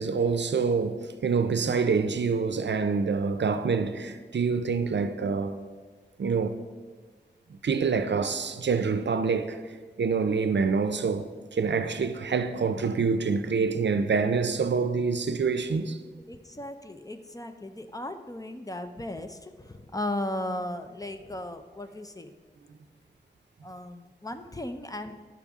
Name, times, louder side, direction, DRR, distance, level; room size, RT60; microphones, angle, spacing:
voice 1, 0.0-5.6 6.2-6.5 7.5-9.6 10.0-16.0, right 5 dB, 80° right, 0.5 m, -26 dB
voice 2, 16.3-22.3 23.6-25.1, left 1 dB, 20° left, 0.5 m, -36 dB
11.5 x 6.0 x 3.6 m
wide cardioid pair, 75°, 18 cm